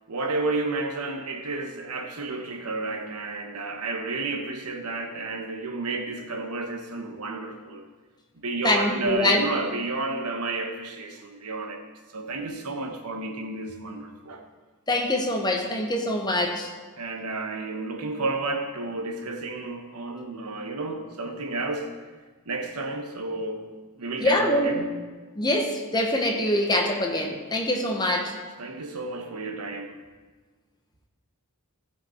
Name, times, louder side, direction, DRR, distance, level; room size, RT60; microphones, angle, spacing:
voice 1, 0.1-7.8 8.3-11.8 12.1-14.4 17.0-21.9 22.5-23.7 24.0-24.9 28.6-30.0, right 3 dB, 90° right, 4 dB, 1.2 m, -31 dB
voice 2, 8.6-9.5 14.9-16.7 24.2-24.7 25.4-28.4, left 1 dB, 20° left, 3 dB, 1.0 m, -24 dB
15.5 x 5.1 x 4.4 m, 1.4 s
head